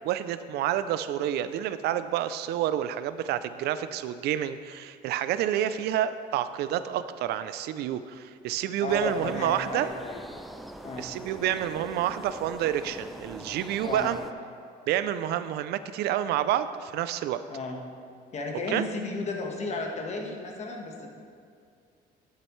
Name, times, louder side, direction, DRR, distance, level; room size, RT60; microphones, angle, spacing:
voice 1, 0.0-9.9 11.0-14.2 14.9-17.4 18.7-18.8, right 11 dB, 75° right, 12 dB, 0.4 m, -29 dB
voice 2, 8.8-10.2 10.8-11.1 13.8-14.1 17.5-17.8 18.3-21.1, left 2 dB, 40° left, 1 dB, 1.3 m, -33 dB
sound 1, 8.9-14.3, equal, ahead, 0.4 m, -43 dB
11.0 x 7.5 x 3.1 m, 2.4 s
cardioid pair, 110°, 17 cm